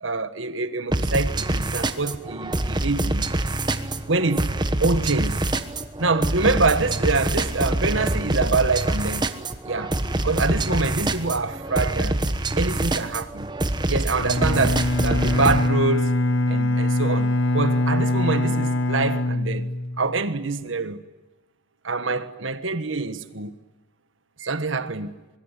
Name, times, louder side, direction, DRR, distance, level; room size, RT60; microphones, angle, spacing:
voice 1, 0.0-3.2 4.1-4.5 4.8-5.4 6.0-9.2 9.6-12.2 12.6-13.5 13.9-16.1 16.5-19.7 20.0-21.0 21.8-23.5 24.4-25.1, right 3 dB, 70° right, 1.5 m, -25 dB
sound 1, 0.9-15.7, right 1 dB, 20° right, 1.2 m, -25 dB
Bowed string instrument, 14.1-20.2, left 1 dB, 65° left, 0.9 m, -23 dB
24.5 x 22.0 x 9.9 m
head